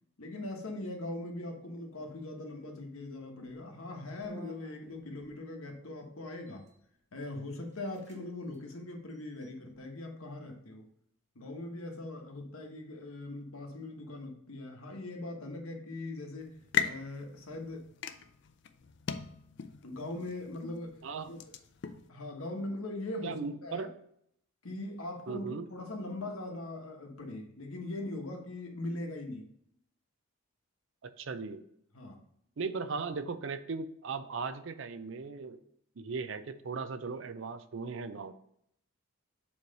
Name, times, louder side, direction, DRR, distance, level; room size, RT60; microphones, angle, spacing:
voice 1, 0.2-6.7 7.1-10.9 11.3-17.8 19.8-21.4 22.1-23.9 24.6-29.5 31.9-32.2, left 2 dB, 80° left, 2 dB, 1.2 m, -41 dB
sound 1, 3.4-3.6 4.2-5.4 6.3-6.8 7.3-7.4 7.7-8.2 8.5-8.6 9.1-9.8, right 1 dB, 35° right, 1.1 m, -53 dB
sound 2, 16.4-22.1, left 8 dB, 55° left, 0.4 m, -38 dB
voice 2, 23.2-24.0 25.3-25.7 31.0-31.6 32.6-35.6 36.0-38.3, right 4 dB, 60° right, 11 dB, 0.5 m, -37 dB
7.2 x 3.2 x 5.2 m, 0.72 s
head